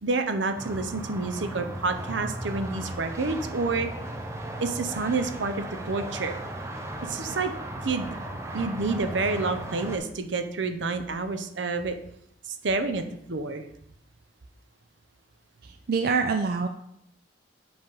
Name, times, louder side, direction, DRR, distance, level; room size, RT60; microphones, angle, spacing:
voice 1, 0.0-3.9 4.6-6.4 7.0-7.5 7.8-8.1 8.5-12.0 12.6-13.6, right 3 dB, 80° right, 8 dB, 0.7 m, -29 dB
sound 1, 0.5-10.0, right 1 dB, 15° right, 0.6 m, -36 dB
voice 2, 15.6-16.7, right 5 dB, 55° right, 6 dB, 0.4 m, -25 dB
7.9 x 3.4 x 5.3 m, 0.73 s
head